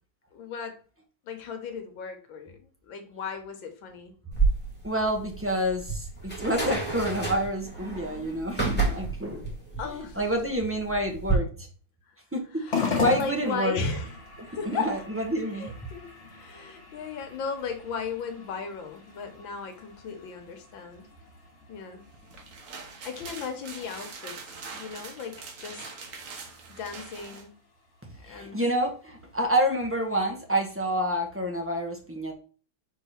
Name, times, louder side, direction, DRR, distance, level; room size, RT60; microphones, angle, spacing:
voice 1, 0.3-0.8 1.3-4.2 9.8-10.2 12.6-14.1 14.5-14.9 15.5-21.1 21.7-22.0 23.0-24.5 24.8-25.9 26.7-27.5 28.2-28.6, left 5 dB, 85° left, 6 dB, 1.7 m, -36 dB
sound 1, 4.3-11.3, right 4 dB, 5° left, 2.1 m, -30 dB
voice 2, 4.8-11.7 12.3-13.8 14.4-15.7 28.2-32.3, right 1 dB, 10° right, 1 dB, 0.7 m, -28 dB
sound 2, 12.7-31.3, left 4 dB, 40° left, 1.7 m, -40 dB
sound 3, 22.1-27.5, right 4 dB, 50° right, 1.2 m, -43 dB
4.8 x 3.8 x 5.7 m, 0.40 s
omnidirectional pair, 2.1 m